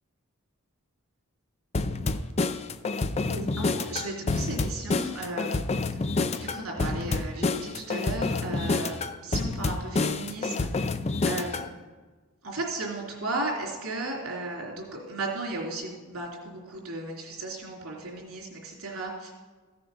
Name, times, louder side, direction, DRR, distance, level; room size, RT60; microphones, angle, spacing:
sound 1, 1.7-11.7, left 3 dB, 30° left, 0.5 m, -28 dB
voice 1, 3.3-5.6 6.3-10.9 11.2-11.7 12.4-19.4, right 2 dB, 90° right, -1 dB, 3.1 m, -35 dB
14.5 x 6.8 x 5.5 m, 1.3 s
head